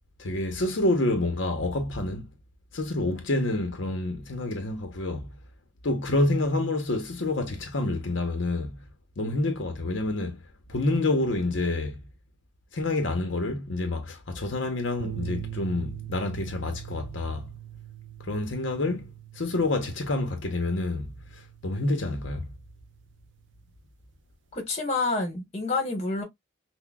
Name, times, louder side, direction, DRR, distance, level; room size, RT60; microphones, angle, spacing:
voice 1, 0.2-2.3 2.7-5.3 5.8-8.8 9.2-10.4 10.7-12.0 12.7-17.5 18.2-19.1 19.3-22.5, left 2 dB, 75° left, 0.8 m, -28 dB
sound 1, 15.0-23.4, right 12 dB, 65° right, 0.3 m, -42 dB
voice 2, 24.5-26.2, left 3 dB, 35° left, 1.4 m, -28 dB
5.8 x 2.2 x 2.2 m
head